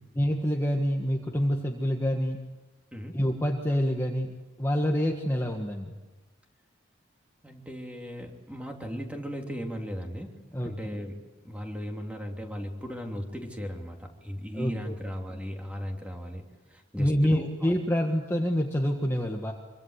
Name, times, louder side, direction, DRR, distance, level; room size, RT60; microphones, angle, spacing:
voice 1, 0.1-2.4 3.1-5.9 10.5-11.0 14.5-14.9 16.9-19.5, equal, 15° left, 1 dB, 1.6 m, -27 dB
voice 2, 7.4-11.1 11.4-16.4 16.7-17.7, equal, 5° right, 2 dB, 3.1 m, -37 dB
26.0 x 24.5 x 8.2 m, 1.2 s
head